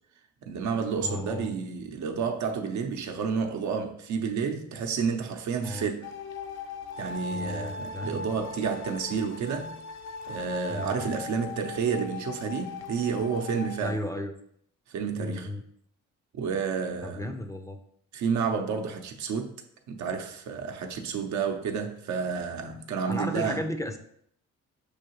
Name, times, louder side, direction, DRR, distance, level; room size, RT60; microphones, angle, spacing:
voice 1, 0.4-6.1 7.0-9.8 10.3-14.0 14.9-15.5 16.3-17.3 18.1-19.5 19.9-23.6, right 6 dB, 70° right, 0.7 m, -30 dB
voice 2, 1.0-1.5 5.6-5.9 7.3-8.3 10.7-11.1 13.8-14.4 15.1-15.6 17.0-17.8 23.1-24.0, left 1 dB, 10° left, 0.4 m, -34 dB
sound 1, 6.0-13.9, left 4 dB, 60° left, 0.5 m, -39 dB
6.4 x 2.7 x 3.0 m
cardioid pair, 90°, 30 cm